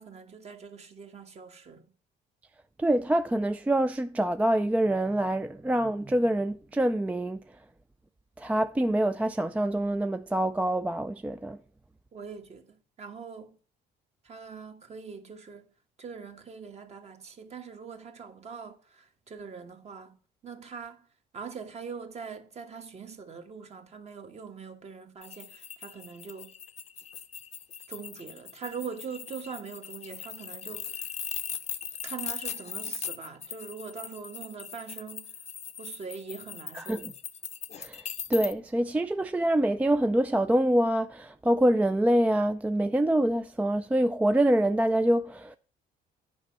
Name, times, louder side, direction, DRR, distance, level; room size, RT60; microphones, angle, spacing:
voice 1, 0.0-1.9 12.1-13.6 14.2-15.7 16.0-20.2 20.4-21.1 21.3-26.5 27.9-31.1 32.0-35.4 35.8-37.1, right 5 dB, 40° right, 1.3 m, -42 dB
voice 2, 2.8-7.4 8.4-11.6 36.7-37.0 37.8-38.0 38.3-45.6, right 1 dB, 10° right, 0.3 m, -25 dB
sound 1, 25.2-38.5, left 8 dB, 40° left, 0.6 m, -39 dB
9.3 x 5.2 x 5.7 m
cardioid pair, 110°, 17 cm